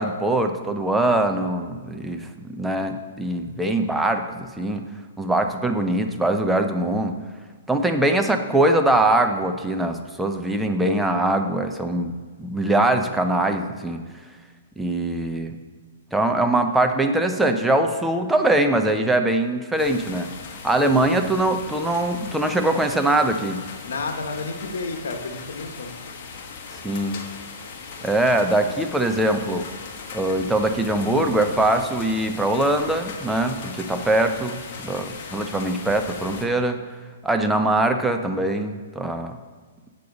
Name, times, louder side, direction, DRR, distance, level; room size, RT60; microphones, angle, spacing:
voice 1, 0.0-4.8 5.2-7.2 7.7-12.1 12.4-14.0 14.8-15.6 16.1-20.3 20.6-23.6 26.8-27.2 28.0-29.7 30.1-36.8 37.2-39.4, right 1 dB, 5° right, 5 dB, 0.6 m, -22 dB
sound 1, 19.8-36.4, left 4 dB, 45° left, 1.2 m, -38 dB
voice 2, 23.8-25.9, left 3 dB, 80° left, 5 dB, 1.2 m, -31 dB
8.3 x 6.7 x 3.9 m, 1.5 s
hypercardioid pair, 145°, 0 cm